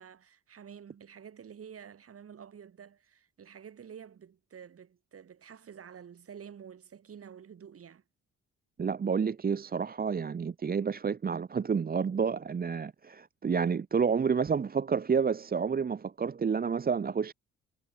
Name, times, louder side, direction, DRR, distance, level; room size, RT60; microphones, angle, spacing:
voice 1, 0.0-8.0, right 7 dB, 50° right, 3.5 m, -49 dB
voice 2, 8.8-17.3, right 6 dB, 30° right, 0.9 m, -29 dB
cardioid pair, 90°, 30 cm